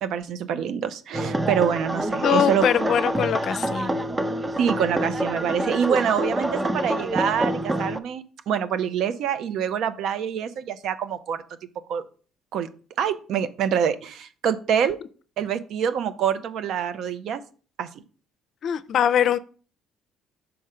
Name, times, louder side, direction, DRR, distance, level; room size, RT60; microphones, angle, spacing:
voice 1, 0.0-2.7 4.6-11.4 11.9-12.0 12.5-12.7 13.0-15.0 15.4-17.4 17.8-17.9, right 8 dB, 70° right, 0.6 m, -25 dB
sound 1, 1.1-8.0, right 1 dB, 20° right, 0.6 m, -27 dB
voice 2, 2.2-4.0 18.6-19.4, left 9 dB, 60° left, 0.5 m, -22 dB
5.6 x 3.7 x 5.5 m
supercardioid pair, 70°, 0 cm